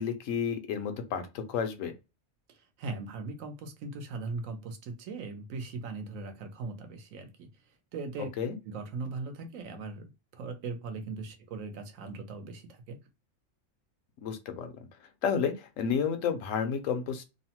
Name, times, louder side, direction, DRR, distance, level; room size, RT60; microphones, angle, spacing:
voice 1, 0.0-1.9 8.4-8.5 14.2-14.7 15.2-17.2, left 7 dB, 80° left, 1.0 m, -31 dB
voice 2, 2.5-7.5 7.9-8.3 8.6-13.0, right 3 dB, 85° right, 1.1 m, -39 dB
3.0 x 2.0 x 2.8 m
omnidirectional pair, 1.4 m